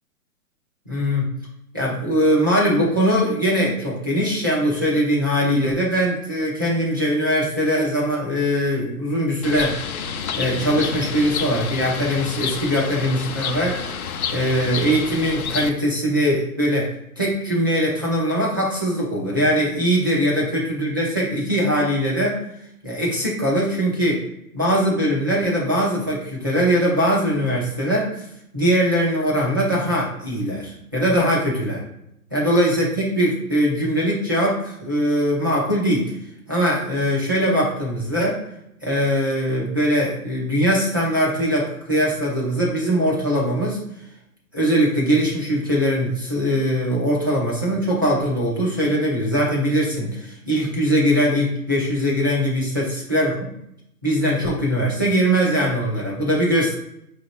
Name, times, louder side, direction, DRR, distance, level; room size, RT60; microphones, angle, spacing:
voice 1, 0.9-1.3 1.7-9.8 10.3-13.9 14.3-22.4 22.8-24.2 24.5-28.1 28.5-31.8 32.3-36.1 36.5-38.4 38.8-43.8 44.5-53.5 54.0-56.8, equal, 15° right, -6 dB, 0.4 m, -21 dB
Bird, 9.4-15.7, left 6 dB, 65° left, 0.6 m, -29 dB
5.3 x 2.5 x 3.4 m, 0.77 s
hypercardioid pair, 145°, 46 cm